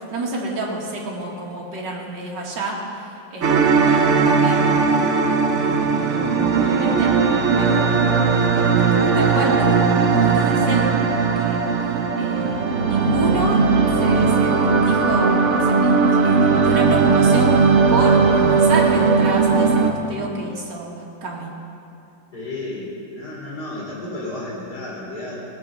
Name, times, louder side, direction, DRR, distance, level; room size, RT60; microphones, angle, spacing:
voice 1, 0.1-2.8 3.3-6.3 6.5-7.1 7.6-11.6 12.2-13.6 14.0-15.9 16.2-17.6 17.9-20.9 21.2-21.5, right 2 dB, 70° right, -3 dB, 2.5 m, -29 dB
sound 1, 3.4-19.9, right 5 dB, 50° right, 1.0 m, -18 dB
voice 2, 22.3-25.4, left 2 dB, 60° left, -5 dB, 4.4 m, -32 dB
18.0 x 8.0 x 6.3 m, 2.7 s
omnidirectional pair, 1.9 m